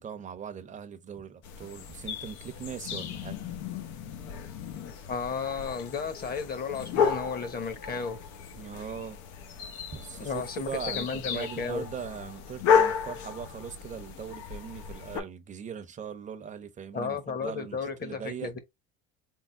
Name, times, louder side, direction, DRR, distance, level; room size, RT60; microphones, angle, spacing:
voice 1, 0.0-3.4 8.6-9.2 9.9-18.5, right 7 dB, 25° right, 0.8 m, -40 dB
sound 1, 1.4-15.2, left 7 dB, 70° left, 1.0 m, -32 dB
voice 2, 5.0-8.2 10.2-10.7 10.9-11.8 16.9-18.6, left 5 dB, 30° left, 1.2 m, -33 dB
3.7 x 2.0 x 4.3 m
supercardioid pair, 105°, 29 cm